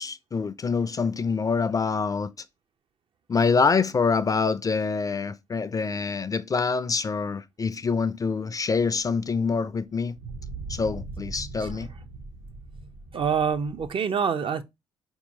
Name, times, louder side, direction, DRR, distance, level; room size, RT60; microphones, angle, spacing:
voice 1, 0.0-2.3 3.3-10.2 10.7-11.9, left 5 dB, 30° left, 0.3 m, -25 dB
sound 1, 9.0-9.1 10.2-13.9, right 3 dB, 65° right, 0.8 m, -40 dB
voice 2, 13.1-14.6, right 6 dB, 45° right, 0.5 m, -26 dB
4.3 x 2.7 x 2.6 m
hypercardioid pair, 45°, 12 cm